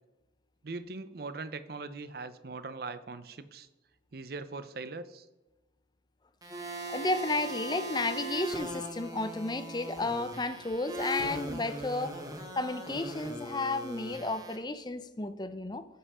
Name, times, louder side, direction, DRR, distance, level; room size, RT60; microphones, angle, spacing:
voice 1, 0.6-3.7 4.1-5.2, right 3 dB, 55° right, 0.6 m, -41 dB
sound 1, 6.4-14.6, right 1 dB, 20° right, 1.2 m, -39 dB
voice 2, 6.9-12.2 12.6-15.9, left 2 dB, 20° left, 0.5 m, -32 dB
15.5 x 5.6 x 4.9 m
head